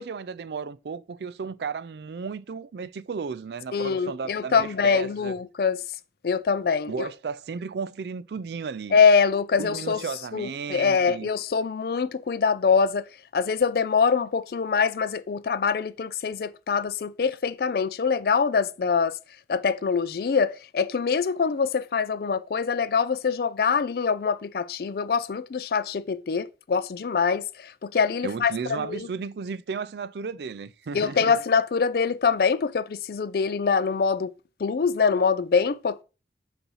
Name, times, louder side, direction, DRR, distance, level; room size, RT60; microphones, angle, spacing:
voice 1, 0.0-5.3 6.9-9.0 9.6-11.3 28.2-31.3, right 5 dB, 70° right, 0.4 m, -34 dB
voice 2, 3.7-5.8 6.2-7.1 8.9-10.0 10.3-13.1 13.3-19.2 19.5-29.1 30.9-34.3 34.6-36.0, left 5 dB, 55° left, 0.4 m, -24 dB
7.0 x 2.7 x 5.5 m
head